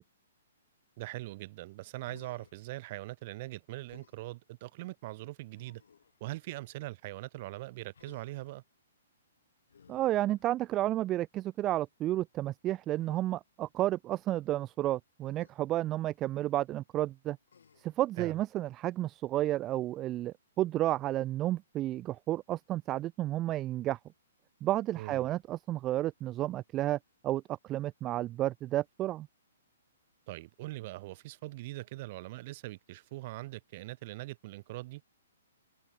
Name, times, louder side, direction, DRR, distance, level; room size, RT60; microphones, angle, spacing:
voice 1, 1.0-5.8 6.2-8.6 18.2-18.4 24.9-25.3 30.3-35.0, right 19 dB, 40° right, 1.5 m, -42 dB
Human voice, 2.0-2.6 3.8-4.2 5.5-6.2 7.9-8.6 9.7-10.9 13.0-13.2 15.2-15.5 17.5-18.0 19.6-20.1, left 7 dB, 65° left, 2.7 m, -59 dB
voice 2, 9.9-17.4 17.8-24.0 24.6-27.0 27.2-29.3, right 14 dB, 25° right, 0.3 m, -31 dB
figure-of-eight pair, 120°, 0 cm